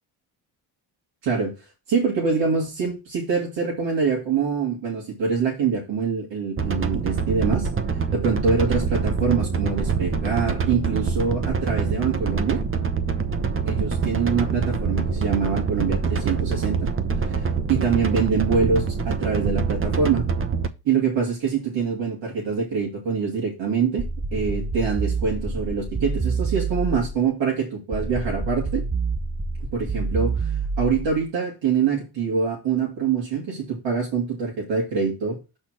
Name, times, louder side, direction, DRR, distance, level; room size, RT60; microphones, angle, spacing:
voice 1, 1.2-1.5 1.9-7.7 8.1-12.6 13.7-16.9 17.1-20.3 20.8-28.8 29.7-35.4, right 5 dB, 70° right, -2 dB, 2.6 m, -25 dB
sound 1, 6.6-20.7, right 5 dB, 30° right, 1.0 m, -25 dB
sound 2, 24.0-27.2 27.9-31.2, right 4 dB, 10° right, 0.6 m, -27 dB
5.9 x 4.4 x 6.1 m, 0.28 s
supercardioid pair, 55°, 45 cm